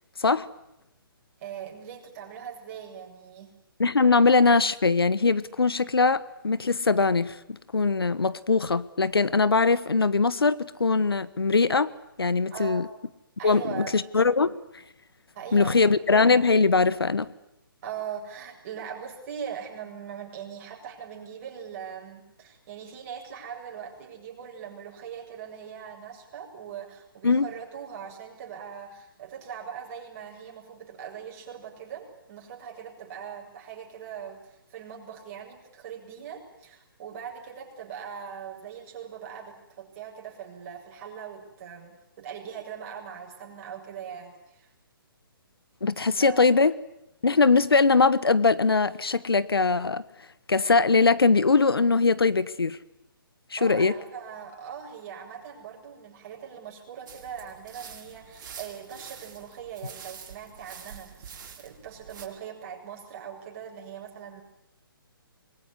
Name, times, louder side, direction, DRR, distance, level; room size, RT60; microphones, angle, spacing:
voice 1, 0.2-0.5 3.8-11.9 12.2-12.8 13.4-14.6 15.5-17.3 27.2-27.5 45.8-46.8 47.2-50.0 50.5-52.8 53.5-53.9, left 4 dB, 85° left, 1.3 m, -21 dB
voice 2, 1.4-3.5 12.5-12.9 13.4-14.0 15.3-15.9 17.8-44.7 45.9-46.4 53.6-64.4, right 8 dB, 40° right, 7.5 m, -41 dB
sound 1, 57.1-62.3, right 7 dB, 55° right, 5.3 m, -46 dB
25.5 x 22.0 x 9.8 m
figure-of-eight pair, 140°, 12 cm